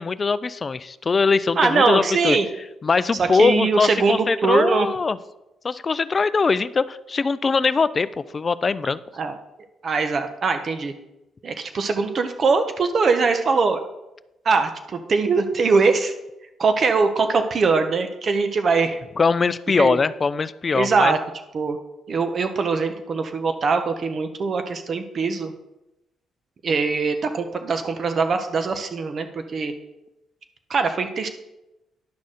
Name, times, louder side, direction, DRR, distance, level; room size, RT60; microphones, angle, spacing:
voice 1, 0.0-2.4 2.8-5.2 5.6-8.1 8.3-9.0 19.2-21.1, left 4 dB, 35° left, 16 dB, 0.4 m, -21 dB
voice 2, 1.6-2.5 3.2-4.9 9.2-9.3 9.8-10.9 11.4-13.8 14.4-16.1 16.6-19.0 19.8-20.0 20.7-21.2 21.5-21.8 22.1-25.5 26.6-29.7 30.7-31.3, right 4 dB, 45° right, 7 dB, 0.8 m, -22 dB
10.5 x 4.1 x 6.3 m, 0.94 s
cardioid pair, 90°, 0 cm